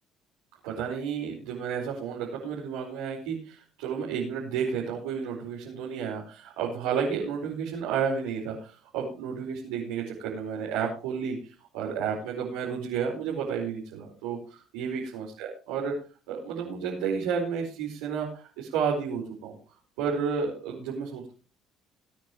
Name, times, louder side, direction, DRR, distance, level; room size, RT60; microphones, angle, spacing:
voice 1, 0.6-11.4 11.7-15.9 16.3-19.5 20.0-21.3, right 6 dB, 80° right, -5 dB, 4.8 m, -31 dB
22.0 x 9.5 x 3.1 m, 0.35 s
hypercardioid pair, 60°, 0 cm